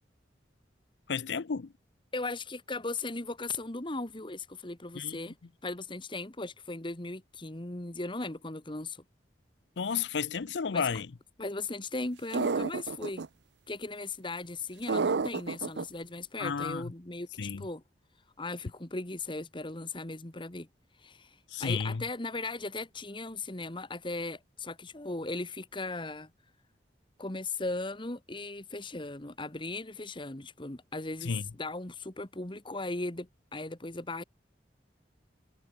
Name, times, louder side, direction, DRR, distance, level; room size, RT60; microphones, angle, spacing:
voice 1, 1.1-1.7 4.9-5.2 9.8-11.1 16.4-16.9 17.4-17.6 21.5-22.0 31.2-31.5, left 5 dB, 75° left, 0.6 m, -32 dB
voice 2, 2.1-5.3 5.6-9.0 10.7-10.9 11.4-13.2 13.7-17.8 18.4-20.7 21.0-26.3 27.2-34.2, left 2 dB, 30° left, 1.6 m, -37 dB
sound 1, 12.3-13.3 14.9-15.8, right 4 dB, 75° right, 0.6 m, -29 dB
head